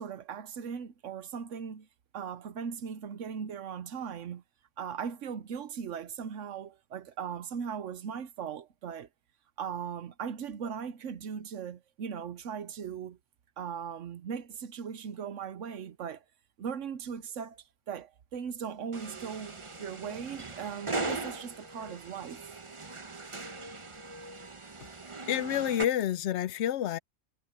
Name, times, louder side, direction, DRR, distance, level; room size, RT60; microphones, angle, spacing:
voice 1, 0.0-1.9 2.1-4.4 4.8-9.1 9.6-13.2 13.6-16.2 16.6-22.4, right 7 dB, 80° right, 1.2 m, -38 dB
sound 1, 18.9-25.8, right 3 dB, 25° right, 1.0 m, -39 dB
voice 2, 25.3-27.0, left 11 dB, 70° left, 0.8 m, -29 dB
omnidirectional pair, 1.3 m